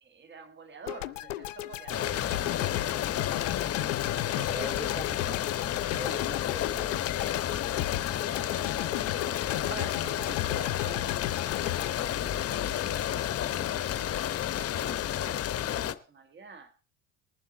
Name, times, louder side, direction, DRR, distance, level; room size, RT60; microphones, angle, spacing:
voice 1, 0.0-3.5 4.0-4.8 7.9-14.1 14.6-16.7, right 4 dB, 30° right, 1.6 m, -48 dB
sound 1, 0.9-13.1, left 15 dB, 80° left, 0.5 m, -36 dB
sound 2, 1.9-15.9, left 11 dB, 40° left, 0.8 m, -31 dB
voice 2, 4.5-5.5 5.9-7.0, left 3 dB, ahead, 3.8 m, -40 dB
20.5 x 7.3 x 4.2 m
hypercardioid pair, 65°, 38 cm